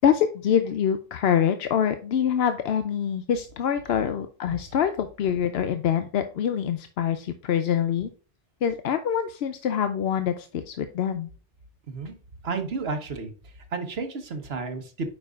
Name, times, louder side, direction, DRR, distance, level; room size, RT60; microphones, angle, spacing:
voice 1, 0.0-8.1 8.6-11.3, left 8 dB, 65° left, 8 dB, 0.8 m, -25 dB
voice 2, 12.4-13.3 13.7-15.2, right 4 dB, 60° right, 7 dB, 1.2 m, -31 dB
8.6 x 5.4 x 2.4 m, 0.39 s
omnidirectional pair, 1.2 m